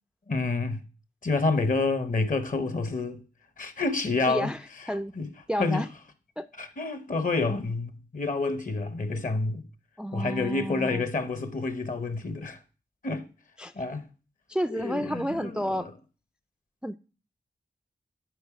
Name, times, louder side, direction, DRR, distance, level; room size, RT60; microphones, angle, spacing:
voice 1, 0.3-0.8 1.2-3.2 3.6-4.5 5.2-5.3 5.6-5.9 6.6-9.6 10.1-12.6 13.0-13.3 13.7-14.1 14.7-15.9, left 3 dB, 50° left, 1.0 m, -28 dB
voice 2, 4.3-4.6 4.9-5.1 5.5-5.9 6.4-6.5 10.0-11.0 13.6-13.7 14.5-15.9 16.8-17.0, equal, 5° right, 0.3 m, -30 dB
9.5 x 3.9 x 4.9 m
cardioid pair, 45°, 17 cm